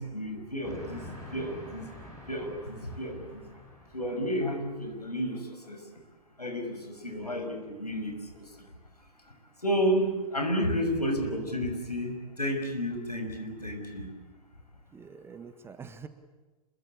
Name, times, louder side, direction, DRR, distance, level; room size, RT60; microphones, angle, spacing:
voice 1, 0.0-1.9 2.3-3.4 3.9-5.8 6.4-8.5 9.6-14.1, equal, 85° left, 4 dB, 5.9 m, -31 dB
Train, 0.6-4.6, left 2 dB, 15° left, 6.9 m, -46 dB
voice 2, 7.0-7.4 14.9-16.1, right 5 dB, 10° right, 10 dB, 1.5 m, -46 dB
27.0 x 22.5 x 8.8 m, 1.2 s
figure-of-eight pair, 110°, 20 cm